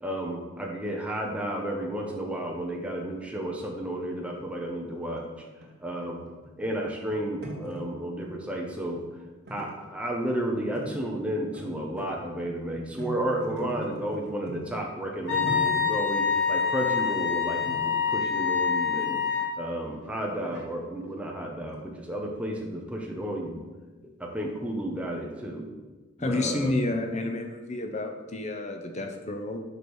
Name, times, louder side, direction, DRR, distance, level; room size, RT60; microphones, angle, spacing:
voice 1, 0.0-5.2 5.8-6.2 6.6-9.0 9.5-19.2 19.6-23.6 24.0-25.6 26.2-26.7, right 1 dB, 5° right, 0 dB, 0.9 m, -32 dB
sound 1, 4.3-8.3 8.6-9.2 9.4-10.4 10.7-10.9 11.2-14.7 15.0-16.2 16.7-16.9 17.6-18.8 19.3-19.4 20.0-20.7 21.5-21.8 22.0-22.1 22.4-22.5 22.9-23.0, equal, 50° right, 1.5 m, -42 dB
Wind instrument woodwind instrument, 15.3-19.5, left 6 dB, 60° left, 1.7 m, -26 dB
voice 2, 26.2-29.6, left 2 dB, 35° left, 5 dB, 0.7 m, -30 dB
5.3 x 4.8 x 6.2 m, 1.2 s
head